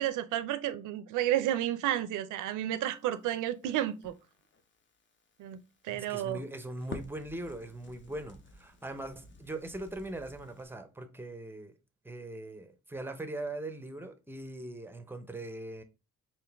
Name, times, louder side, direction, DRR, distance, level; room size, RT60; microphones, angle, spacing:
voice 1, 0.0-4.1 5.4-6.4, right 12 dB, 85° right, 0.5 m, -31 dB
Crackle, 2.9-10.7, left 3 dB, 40° left, 0.8 m, -51 dB
voice 2, 5.9-11.7 12.0-15.8, right 1 dB, 5° right, 0.6 m, -41 dB
3.8 x 2.5 x 3.4 m
cardioid pair, 90°, 30 cm